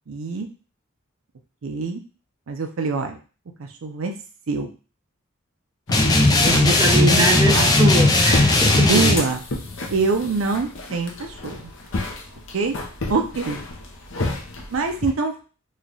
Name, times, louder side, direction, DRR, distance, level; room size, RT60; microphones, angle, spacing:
voice 1, 0.1-0.5 1.6-2.0 2.5-3.2 3.6-4.1 4.5-4.7 6.0-7.7 8.9-9.4 9.9-11.7 12.5-12.7 13.1-13.6 14.7-15.3, right 4 dB, 75° right, 4 dB, 0.5 m, -25 dB
sound 1, 5.9-15.1, left 2 dB, 65° left, 0.6 m, -32 dB
sound 2, 5.9-9.2, left 2 dB, 20° left, 0.4 m, -16 dB
voice 2, 6.3-8.9, right 2 dB, 20° right, -1 dB, 0.7 m, -23 dB
3.1 x 2.2 x 3.9 m, 0.36 s
head